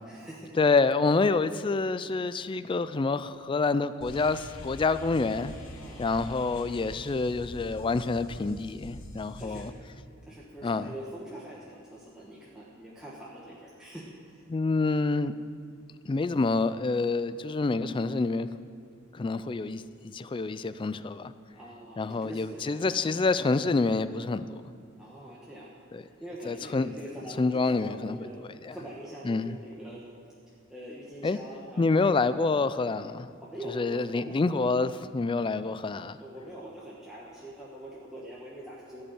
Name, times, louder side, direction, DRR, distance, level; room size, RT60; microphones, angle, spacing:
voice 1, 0.1-0.5 5.7-6.1 9.4-9.7 10.3-14.4 21.5-23.0 25.0-25.7 25.9-28.4 28.7-30.0 30.7-31.8 33.4-34.6 36.2-39.0, right 1 dB, 5° right, 1.3 m, -44 dB
voice 2, 0.6-5.5 6.0-9.7 10.6-10.9 14.5-15.3 16.0-18.5 19.1-21.3 22.0-24.6 25.9-26.0 26.4-27.0 27.4-28.2 28.6-28.8 29.2-29.6 31.2-31.4 31.8-33.3 33.7-36.2, left 3 dB, 25° left, 0.3 m, -27 dB
sound 1, 4.0-9.7, left 1 dB, 80° left, 1.4 m, -44 dB
15.5 x 5.4 x 8.8 m
head